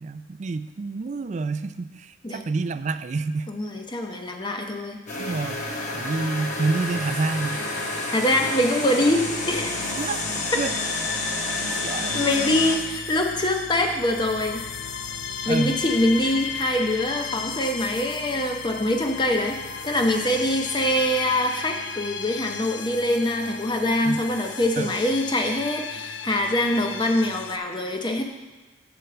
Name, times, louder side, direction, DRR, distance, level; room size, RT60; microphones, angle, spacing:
voice 1, 0.0-3.5 5.2-5.6 5.9-7.6 10.0-10.2 10.5-10.7 11.8-12.3 15.4-15.8 24.0-24.2 24.8-24.9, right 3 dB, 35° right, 12 dB, 0.3 m, -28 dB
voice 2, 3.5-5.0 8.1-9.8 12.1-14.6 15.4-28.2, left 1 dB, 25° left, 3 dB, 0.7 m, -24 dB
sound 1, 5.1-12.8, left 2 dB, 40° left, 1.1 m, -30 dB
sound 2, 9.0-27.6, left 6 dB, 65° left, 0.5 m, -35 dB
7.8 x 4.5 x 6.8 m, 1.3 s
head